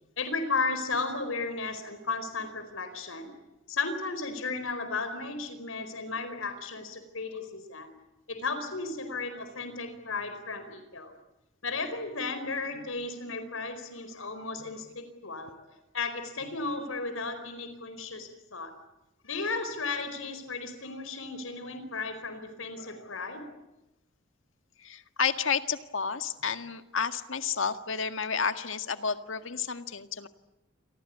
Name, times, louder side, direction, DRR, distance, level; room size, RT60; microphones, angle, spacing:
voice 1, 0.2-3.3 3.7-7.9 8.3-11.1 11.6-15.5 15.9-18.7 19.2-23.5, left 3 dB, 85° left, 9 dB, 4.7 m, -34 dB
voice 2, 24.8-30.3, left 6 dB, 70° left, 9 dB, 1.9 m, -31 dB
29.0 x 24.0 x 8.5 m, 0.95 s
head